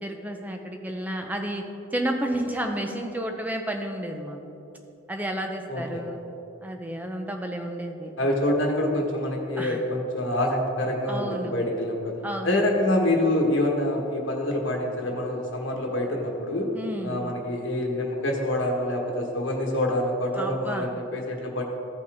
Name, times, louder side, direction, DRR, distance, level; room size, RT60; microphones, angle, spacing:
voice 1, 0.0-1.6 1.9-4.4 5.1-6.2 6.6-8.1 9.6-9.8 11.1-11.5 12.2-12.6 16.7-17.2 20.4-20.9, right 1 dB, 10° right, 3 dB, 0.6 m, -31 dB
voice 2, 5.7-6.0 8.2-12.2 12.4-16.7 17.0-21.6, left 1 dB, 60° left, 0 dB, 1.4 m, -26 dB
14.5 x 5.4 x 3.5 m, 2.9 s
head